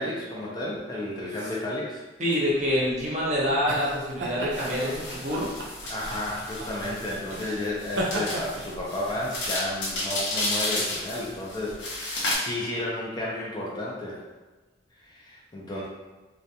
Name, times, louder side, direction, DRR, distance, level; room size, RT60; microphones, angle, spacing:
voice 1, 0.0-2.0 5.9-14.2 15.0-15.9, left 1 dB, 20° left, -5 dB, 0.4 m, -32 dB
voice 2, 2.2-5.5, equal, 40° right, -5 dB, 0.6 m, -26 dB
sound 1, 2.6-11.8, right 1 dB, 80° right, 0.4 m, -36 dB
sound 2, 4.5-12.4, left 1 dB, 75° left, 0.6 m, -32 dB
2.4 x 2.1 x 2.7 m, 1.2 s
head